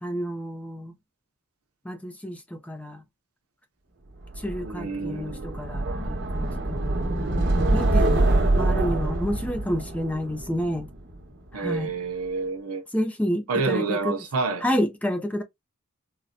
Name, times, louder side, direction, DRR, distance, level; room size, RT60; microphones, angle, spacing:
voice 1, 0.0-0.9 1.8-3.0 4.4-7.1 7.7-8.2 8.5-10.9 11.5-11.9 12.9-14.2 14.6-15.4, equal, 5° left, 0.4 m, -29 dB
sound 1, 4.3-11.3, right 2 dB, 55° right, 1.0 m, -25 dB
voice 2, 4.6-6.1 11.5-12.8 13.5-14.6, right 4 dB, 85° right, 0.7 m, -29 dB
4.0 x 2.1 x 2.5 m
head